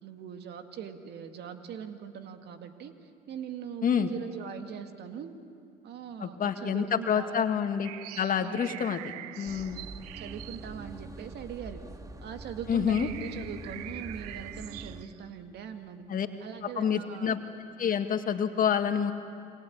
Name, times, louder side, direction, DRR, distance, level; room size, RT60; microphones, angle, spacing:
voice 1, 0.0-5.4 5.8-7.5 8.4-8.8 10.2-11.8 12.2-16.1 16.4-17.3, right 8 dB, 60° right, 7 dB, 2.0 m, -41 dB
voice 2, 6.2-7.9 8.2-9.0 9.4-9.8 12.7-13.1 16.1-16.3 16.6-17.4 17.8-19.1, left 8 dB, 45° left, 7 dB, 2.0 m, -27 dB
sound 1, 7.8-11.7 12.3-12.4 12.7-15.2, right 15 dB, 85° right, 0.7 m, -44 dB
sound 2, 9.5-15.0, right 2 dB, 20° right, 1.7 m, -44 dB
28.0 x 23.5 x 8.7 m, 2.5 s
hypercardioid pair, 65°, 19 cm